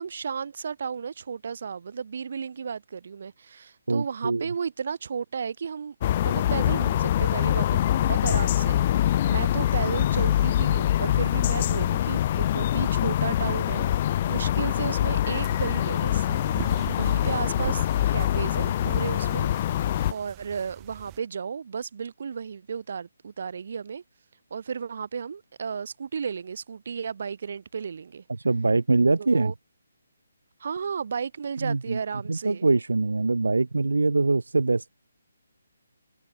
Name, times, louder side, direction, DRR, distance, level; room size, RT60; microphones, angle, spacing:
voice 1, 0.0-6.0 6.2-16.3 16.9-19.5 19.8-24.0 24.5-28.2 29.2-29.5 30.6-32.7, right 6 dB, 55° right, 5.2 m, -34 dB
voice 2, 3.9-4.5 28.4-29.5 31.6-32.0 32.3-34.9, right 3 dB, 85° right, 0.9 m, -23 dB
sound 1, 6.0-20.1, left 12 dB, 35° left, 0.9 m, -24 dB
sound 2, 15.2-21.2, right 40 dB or more, 20° right, 2.2 m, -41 dB
figure-of-eight pair, 150°, 0 cm